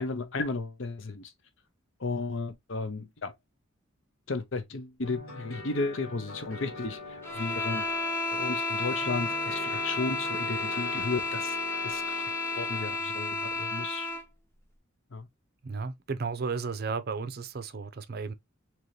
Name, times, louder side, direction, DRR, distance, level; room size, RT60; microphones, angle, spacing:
voice 1, 0.0-1.3 2.0-3.3 4.3-7.9 8.3-12.2 12.6-14.1 15.1-15.3, left 3 dB, 65° left, 0.7 m, -34 dB
sound 1, 5.0-13.0, left 2 dB, 85° left, 1.9 m, -43 dB
sound 2, 7.2-14.3, left 3 dB, 10° left, 0.7 m, -32 dB
voice 2, 15.6-18.3, right 4 dB, 50° right, 0.5 m, -34 dB
3.9 x 3.0 x 3.0 m
head